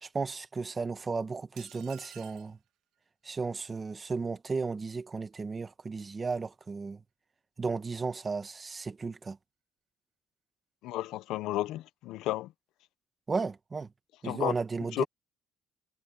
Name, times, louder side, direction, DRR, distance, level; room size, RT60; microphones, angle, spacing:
voice 1, 0.0-2.6 3.2-7.0 7.6-9.4 13.3-13.9 14.2-15.1, right 4 dB, 20° right, 1.2 m, -34 dB
sound 1, 1.6-2.6, right 12 dB, 70° right, 2.0 m, -52 dB
voice 2, 10.8-12.5 14.2-14.5 14.9-15.0, left 15 dB, 80° left, 0.8 m, -32 dB
cardioid pair, 150°, 0 cm